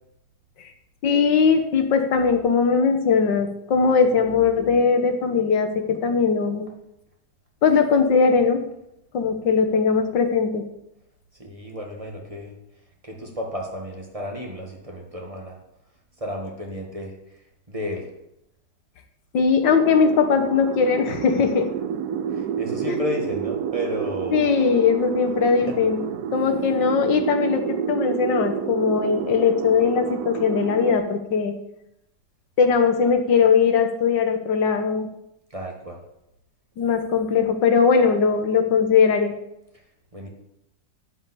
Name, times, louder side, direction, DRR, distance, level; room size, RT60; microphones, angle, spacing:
voice 1, 1.0-6.7 7.6-8.6 9.1-10.6 19.3-21.7 22.9-23.0 24.3-26.0 26.3-31.5 32.6-35.1 36.8-39.3, left 5 dB, 90° left, 6 dB, 1.9 m, -20 dB
voice 2, 11.4-12.5 13.0-15.6 16.2-17.2 17.7-18.1 22.3-24.5 25.7-25.8 35.5-36.0 40.1-40.3, left 1 dB, 20° right, 0 dB, 2.0 m, -32 dB
sound 1, 19.7-31.0, right 9 dB, 65° right, 1.1 m, -29 dB
11.5 x 5.4 x 8.4 m, 0.83 s
omnidirectional pair, 1.9 m